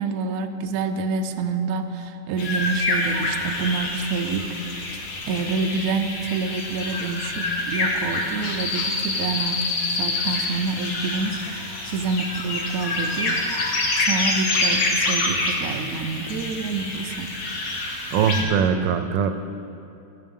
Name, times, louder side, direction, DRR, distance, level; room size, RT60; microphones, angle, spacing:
voice 1, 0.0-4.5 5.3-13.4 14.0-17.3, right 4 dB, 65° right, 6 dB, 1.0 m, -27 dB
sound 1, 2.4-18.4, left 2 dB, 75° left, 1.9 m, -26 dB
voice 2, 18.1-19.3, right 7 dB, 90° right, 9 dB, 1.3 m, -21 dB
16.0 x 7.7 x 3.7 m, 2.8 s
omnidirectional pair, 1.9 m